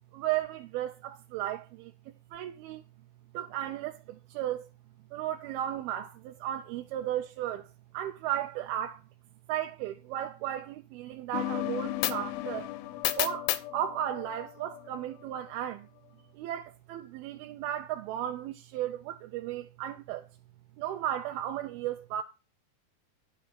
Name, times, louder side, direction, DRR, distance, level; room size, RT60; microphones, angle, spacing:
voice 1, 0.1-1.9 2.3-2.8 3.3-4.6 5.1-7.7 7.9-9.0 9.5-12.7 13.2-15.9 16.3-20.3 20.8-22.2, right 12 dB, 85° right, 2.6 m, -35 dB
sound 1, 11.3-14.9, left 14 dB, 80° left, 2.5 m, -33 dB
11.5 x 4.6 x 6.0 m
omnidirectional pair, 4.3 m